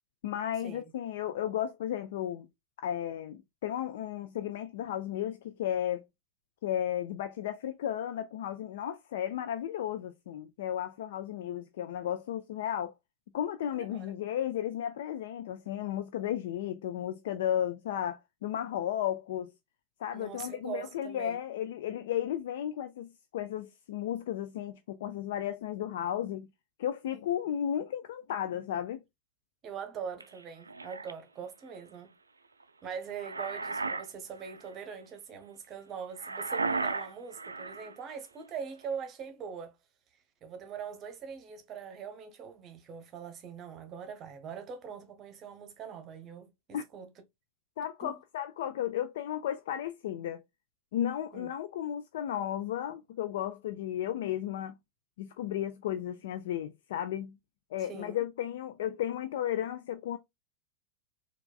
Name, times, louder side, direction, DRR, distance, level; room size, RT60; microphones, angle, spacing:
voice 1, 0.2-2.5 2.8-6.0 6.6-12.9 13.3-19.5 20.0-26.5 26.8-29.0 46.7-46.8 47.8-50.4 50.9-54.8 55.2-57.4 57.7-60.2, left 10 dB, 55° left, 0.3 m, -34 dB
voice 2, 13.7-14.1 20.1-21.4 27.1-27.2 29.6-32.1 32.8-39.8 40.4-47.1 48.0-48.1 51.3-51.5 57.8-58.2, right 7 dB, 30° right, 0.9 m, -42 dB
sound 1, 30.2-31.1 32.9-34.1 34.4-34.7 36.2-37.9, right 3 dB, 80° right, 0.3 m, -35 dB
4.5 x 2.4 x 2.3 m
figure-of-eight pair, 90°, 0 cm